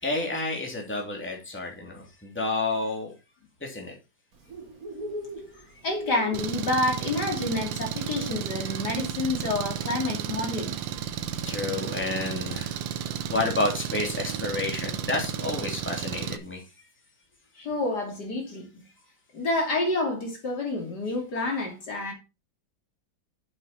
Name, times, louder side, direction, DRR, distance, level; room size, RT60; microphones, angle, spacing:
voice 1, 0.0-3.1 3.6-3.9 5.7-5.8 11.5-16.6, left 2 dB, 5° left, 2.8 m, -30 dB
Bird, 4.3-16.5, equal, 50° right, 2.2 m, -44 dB
voice 2, 5.8-10.8 17.6-18.8 19.3-22.1, left 2 dB, 60° left, 3.5 m, -28 dB
Engine, 6.3-16.4, right 9 dB, 85° right, 1.6 m, -33 dB
9.5 x 7.9 x 4.2 m
omnidirectional pair, 2.0 m